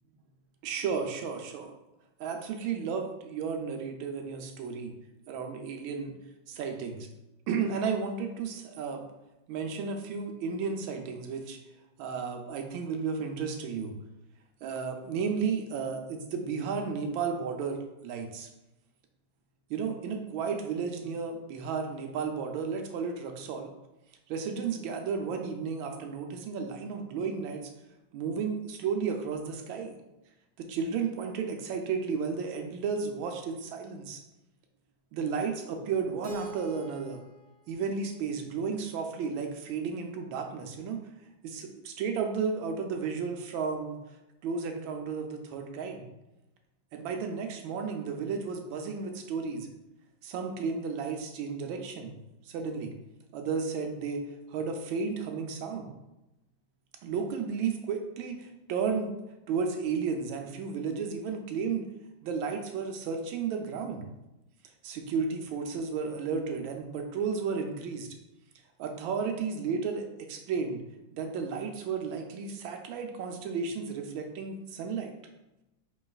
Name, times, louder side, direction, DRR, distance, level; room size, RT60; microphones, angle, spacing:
voice 1, 0.6-1.7 2.2-4.9 5.3-6.1 6.5-7.1 7.5-9.0 9.5-11.6 12.0-13.9 14.6-18.5 19.7-23.7 24.3-27.7 28.1-30.0 30.6-34.2 35.1-37.2 37.7-41.0 41.4-44.0 44.4-46.1 46.9-49.7 50.2-52.1 52.5-52.9 53.3-54.2 54.5-55.9 57.0-59.1 59.5-61.8 62.2-64.0 64.8-68.1 68.8-70.8 71.1-75.1, right 5 dB, 85° right, 4 dB, 1.4 m, -33 dB
Keyboard (musical), 36.2-39.2, right 1 dB, 60° right, 0.8 m, -45 dB
5.2 x 3.1 x 2.3 m, 0.94 s
omnidirectional pair, 2.1 m